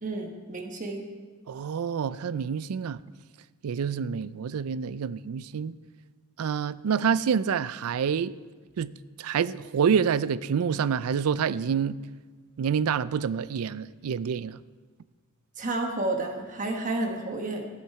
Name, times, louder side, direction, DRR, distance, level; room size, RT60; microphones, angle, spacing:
voice 1, 0.0-1.0 15.6-17.7, right 2 dB, 35° right, 1.2 m, -31 dB
voice 2, 1.5-3.0 3.6-5.8 6.4-8.3 8.8-8.9 9.2-12.0 12.6-14.6, right 7 dB, 90° right, 0.4 m, -27 dB
13.5 x 11.0 x 4.7 m
head